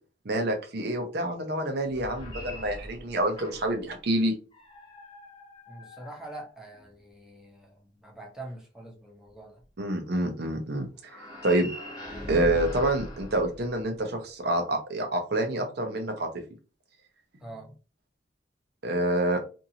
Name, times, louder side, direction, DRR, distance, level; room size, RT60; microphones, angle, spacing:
voice 1, 0.2-4.3 9.8-10.9 11.4-11.7 12.3-16.3 17.3-17.4 18.8-19.4, right 1 dB, 60° right, 4 dB, 0.7 m, -27 dB
sound 1, 1.8-3.9 4.5-6.9 11.0-14.2, equal, 20° left, 0.9 m, -41 dB
voice 2, 5.7-9.6 17.4-17.7, right 2 dB, 5° right, -2 dB, 0.8 m, -44 dB
2.7 x 2.6 x 2.7 m, 0.34 s
head